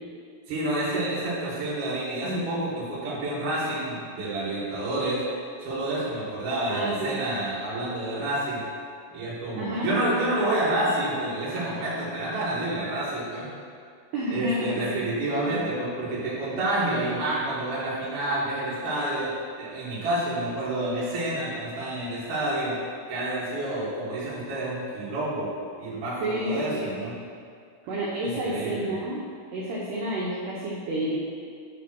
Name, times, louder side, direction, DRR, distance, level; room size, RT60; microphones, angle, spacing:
voice 1, 0.5-5.2 5.6-8.6 9.1-13.5 14.3-19.3 19.6-22.8 23.1-25.5 25.8-27.1 28.2-28.9, right 1 dB, 60° right, -9 dB, 1.5 m, -29 dB
voice 2, 6.7-7.2 9.6-10.0 14.1-15.1 15.5-15.6 26.2-27.0 27.9-29.2 29.5-31.1, equal, 85° right, -6 dB, 2.3 m, -30 dB
8.3 x 3.4 x 6.1 m, 2.2 s
omnidirectional pair, 5.9 m